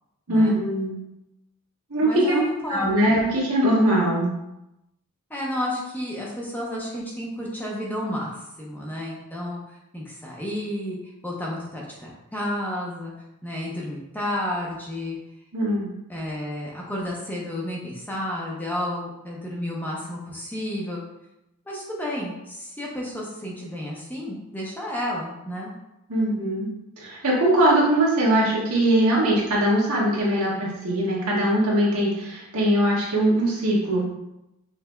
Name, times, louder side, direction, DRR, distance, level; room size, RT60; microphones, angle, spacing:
voice 1, 0.3-1.0 1.9-2.4 2.7-4.3 15.5-15.9 26.1-26.7 27.0-34.0, right 1 dB, 80° right, -5 dB, 1.4 m, -21 dB
voice 2, 2.0-3.1 5.3-11.0 11.2-13.1 13.4-15.2 16.1-21.0 21.7-25.7, left 1 dB, 10° left, -4 dB, 0.7 m, -31 dB
5.6 x 3.3 x 2.3 m, 0.90 s
head